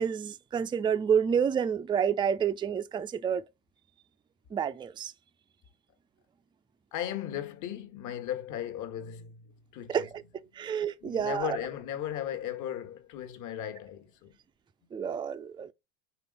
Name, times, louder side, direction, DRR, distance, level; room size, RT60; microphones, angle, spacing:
voice 1, 0.0-3.4 4.5-5.1 9.9-10.2 10.5-11.6 14.9-15.7, right 7 dB, 10° right, 0.4 m, -29 dB
voice 2, 6.9-10.1 10.6-10.8 11.0-14.3 14.8-14.9, left 11 dB, 50° left, 1.5 m, -37 dB
5.3 x 3.9 x 5.3 m
hypercardioid pair, 90°, 39 cm